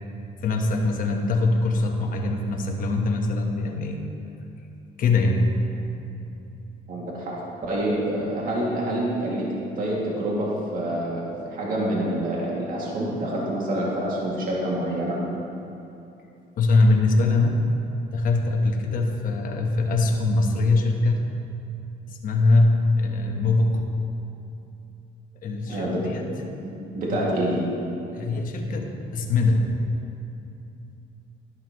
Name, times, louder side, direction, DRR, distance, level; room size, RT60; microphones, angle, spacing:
voice 1, 0.4-4.0 5.0-5.5 16.6-17.7 18.1-21.2 22.1-23.9 25.4-26.3 27.1-27.3 28.1-29.8, left 2 dB, 55° left, 2 dB, 1.2 m, -22 dB
voice 2, 6.9-9.5 9.8-15.2 25.7-26.0 26.6-27.6, right 1 dB, 55° right, -4 dB, 2.3 m, -27 dB
11.5 x 11.0 x 3.1 m, 2.9 s
cardioid pair, 110°, 17 cm